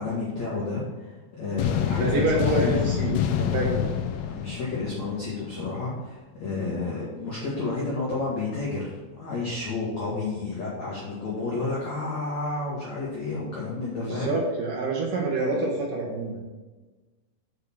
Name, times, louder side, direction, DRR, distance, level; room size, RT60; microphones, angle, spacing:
voice 1, 0.0-2.8 4.2-14.3, left 3 dB, 50° left, -7 dB, 2.3 m, -31 dB
sound 1, 1.6-5.6, left 10 dB, 80° left, 2.4 m, -27 dB
voice 2, 2.0-3.9 14.0-16.4, right 2 dB, 65° right, -2 dB, 2.3 m, -27 dB
7.1 x 6.6 x 6.2 m, 1.2 s
omnidirectional pair, 5.4 m